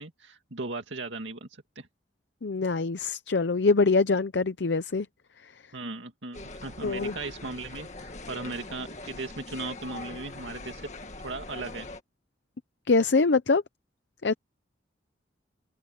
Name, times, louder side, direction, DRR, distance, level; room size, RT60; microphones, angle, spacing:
voice 1, 0.0-1.5 1.8-1.9 5.7-10.9 11.2-11.9, right 3 dB, 80° right, 2.2 m, -37 dB
voice 2, 2.4-5.1 6.8-7.1 12.9-13.6 14.2-14.3, left 3 dB, 70° left, 0.7 m, -24 dB
sound 1, 6.3-12.0, left 2 dB, 40° left, 1.9 m, -42 dB
head